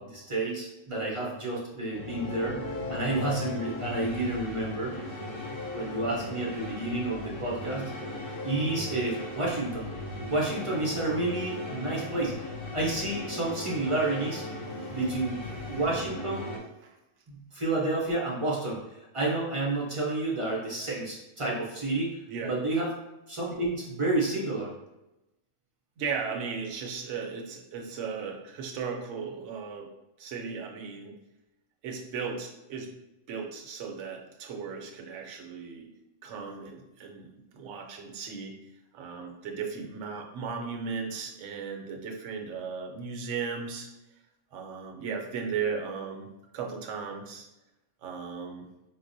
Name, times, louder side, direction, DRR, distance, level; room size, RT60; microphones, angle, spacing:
voice 1, 0.0-5.0 5.7-7.9 8.4-9.9 10.3-14.4 14.9-15.4 15.7-16.5 17.3-22.2 22.4-22.9 23.3-24.7, right 2 dB, 35° right, -4 dB, 0.5 m, -30 dB
sound 1, 1.9-16.6, left 1 dB, 55° left, 0.7 m, -37 dB
voice 2, 26.0-29.9 30.2-31.2 31.8-32.9 33.3-35.9 36.2-38.6 38.9-43.9 44.5-47.5 48.0-48.7, right 5 dB, 70° right, 2 dB, 0.9 m, -36 dB
4.5 x 2.1 x 2.6 m, 0.94 s
omnidirectional pair, 1.3 m